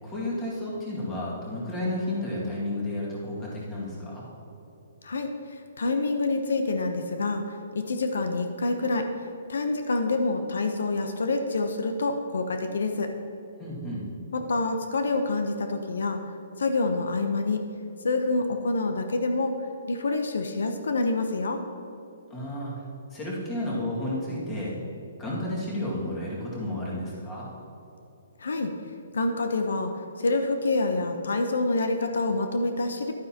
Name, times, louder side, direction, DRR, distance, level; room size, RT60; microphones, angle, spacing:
voice 1, 0.0-4.3 13.6-14.1 22.3-22.8 23.1-24.8 25.2-27.5, left 1 dB, 15° left, -6 dB, 2.1 m, -32 dB
voice 2, 5.0-9.1 9.5-13.1 14.3-16.2 16.6-17.6 18.0-21.6 28.4-28.7 29.1-33.1, left 3 dB, 85° left, 6 dB, 0.8 m, -27 dB
11.5 x 9.5 x 2.9 m, 2.9 s
hypercardioid pair, 165°, 0 cm